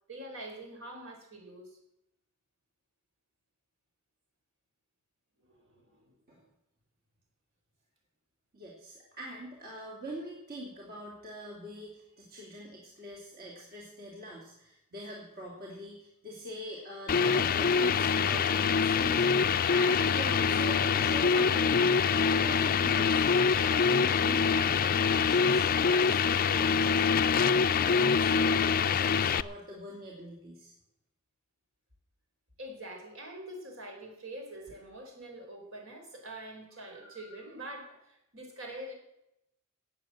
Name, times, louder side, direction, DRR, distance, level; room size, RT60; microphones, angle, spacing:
voice 1, 0.1-1.8 5.5-6.2 32.6-38.9, right 1 dB, 65° right, 2 dB, 4.6 m, -45 dB
voice 2, 8.5-23.2 23.5-27.4 27.7-30.7, right 1 dB, 45° right, -3 dB, 2.9 m, -44 dB
sound 1, 17.1-29.4, left 6 dB, 45° left, 0.5 m, -25 dB
18.5 x 7.5 x 7.7 m, 0.84 s
head